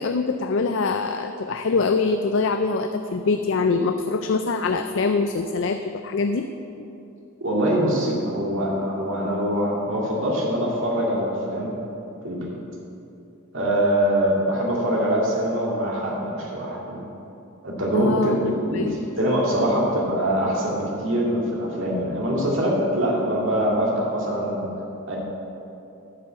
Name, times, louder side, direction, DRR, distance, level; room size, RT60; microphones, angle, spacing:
voice 1, 0.0-6.5 17.9-19.0, left 4 dB, 60° left, 7 dB, 0.4 m, -24 dB
voice 2, 7.4-11.7 12.2-12.5 13.5-17.0 17.6-24.7 25.1-25.2, equal, 60° right, -3 dB, 2.3 m, -23 dB
11.5 x 5.5 x 7.8 m, 2.8 s
head